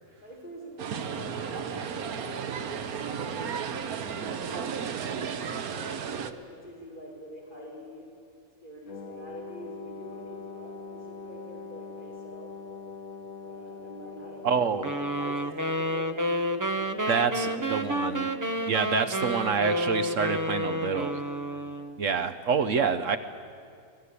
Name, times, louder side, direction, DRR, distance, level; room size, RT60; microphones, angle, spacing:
voice 1, 0.2-8.0 8.6-12.5 13.4-18.3 19.2-20.3 20.6-21.4, equal, 35° left, -4 dB, 5.1 m, -45 dB
sound 1, 0.8-6.3, right 7 dB, 90° right, 1.4 m, -34 dB
Wind instrument woodwind instrument, 8.9-15.5, left 4 dB, 75° left, 1.9 m, -43 dB
voice 2, 14.4-14.9 17.1-18.3 18.7-21.2 22.0-23.2, right 6 dB, 65° right, 10 dB, 1.1 m, -27 dB
sound 2, 14.8-22.0, equal, 20° right, 0.7 m, -30 dB
25.0 x 18.0 x 8.3 m, 2.4 s
omnidirectional pair, 1.5 m